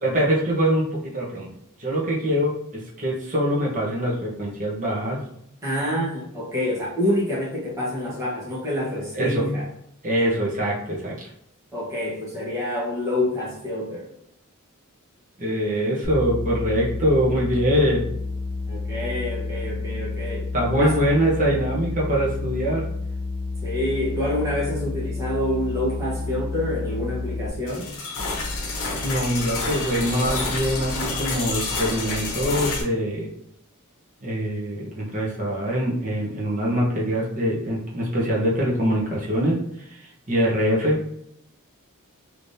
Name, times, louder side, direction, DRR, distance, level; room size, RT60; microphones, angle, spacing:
voice 1, 0.0-1.5 1.8-5.2 9.1-9.5 10.0-11.1 15.4-18.0 20.5-22.8 29.0-33.3 34.2-39.6 39.9-40.0 40.3-41.0, equal, 35° right, -4 dB, 1.0 m, -23 dB
voice 2, 5.6-9.6 11.7-14.1 18.7-20.5 20.8-21.0 23.6-27.9, left 1 dB, 15° right, -7 dB, 1.2 m, -27 dB
sound 1, 16.0-27.5, left 3 dB, 15° left, 1.2 m, -30 dB
sound 2, 27.7-32.8, left 3 dB, 60° left, 0.9 m, -28 dB
3.3 x 3.1 x 2.7 m, 0.75 s
head